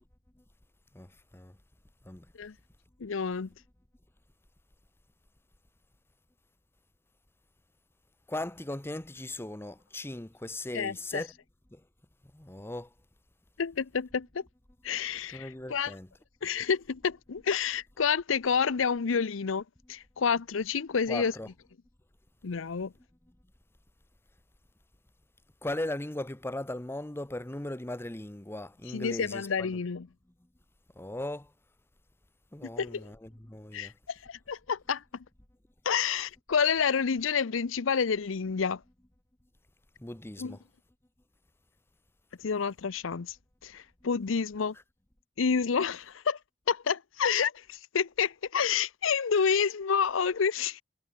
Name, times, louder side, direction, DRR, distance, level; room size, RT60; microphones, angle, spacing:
voice 1, 0.9-1.6 2.0-2.3 8.3-11.3 11.7-11.8 12.3-12.9 15.3-16.1 21.1-21.5 25.6-29.8 31.0-31.5 32.5-33.9 40.0-40.6, left 1 dB, 10° left, 0.9 m, -38 dB
voice 2, 3.0-3.5 10.7-11.3 13.6-14.4 14.8-16.0 16.4-19.6 19.9-21.4 22.4-22.9 28.9-30.1 32.8-33.1 33.7-35.0 35.9-38.8 40.4-40.6 42.4-43.3 43.6-44.7 45.4-46.4 46.7-50.8, left 6 dB, 80° left, 0.6 m, -29 dB
head